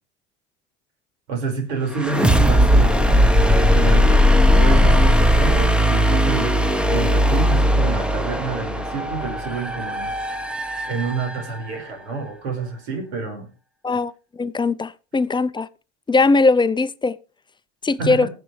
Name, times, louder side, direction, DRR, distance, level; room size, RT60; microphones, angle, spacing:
voice 1, 1.3-3.3 3.7-10.1 10.9-13.5 18.0-18.3, right 4 dB, 75° right, 5.0 m, -28 dB
sound 1, 1.9-11.7, equal, 5° right, 1.1 m, -18 dB
voice 2, 14.4-15.7 16.1-17.2 17.8-18.3, left 3 dB, 15° left, 0.6 m, -19 dB
20.5 x 7.7 x 3.2 m
hypercardioid pair, 90°, 34 cm